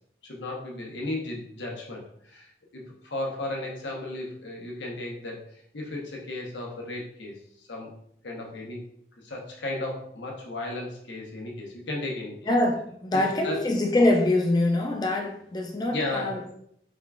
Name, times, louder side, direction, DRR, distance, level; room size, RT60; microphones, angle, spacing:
voice 1, 0.2-7.9 8.2-8.8 9.2-12.5 13.1-13.7 15.9-16.5, left 2 dB, 90° left, 0.9 m, -35 dB
voice 2, 12.5-16.4, left 2 dB, 20° left, 0.3 m, -24 dB
3.6 x 2.3 x 3.5 m
head